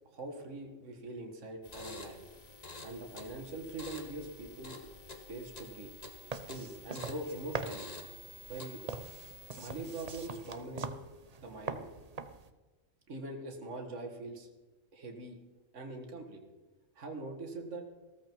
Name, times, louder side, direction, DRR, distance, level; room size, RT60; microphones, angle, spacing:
voice 1, 0.1-2.2 2.8-4.8 5.3-5.9 6.5-7.9 8.5-8.8 9.6-10.9 11.4-12.1 13.1-14.5 14.9-15.4 15.7-16.4 17.0-17.8, right 2 dB, 65° right, 3 dB, 2.1 m, -43 dB
sound 1, 1.6-10.6, left 2 dB, 30° left, 1.5 m, -49 dB
sound 2, 6.3-12.5, right 4 dB, 35° right, 0.7 m, -43 dB
16.0 x 14.0 x 4.6 m, 1.2 s
omnidirectional pair, 1.3 m